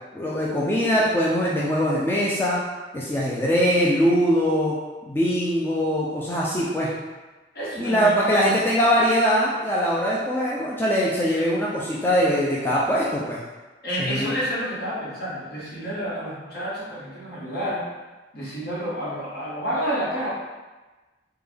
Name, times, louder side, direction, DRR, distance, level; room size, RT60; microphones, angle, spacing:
voice 1, 0.1-2.6 2.9-4.7 5.0-6.9 7.8-13.4 14.0-14.4, equal, 10° left, -6 dB, 0.3 m, -22 dB
voice 2, 7.5-8.2 13.8-17.8 18.3-20.3, equal, 60° left, -8 dB, 1.2 m, -29 dB
3.3 x 2.2 x 3.4 m, 1.2 s
head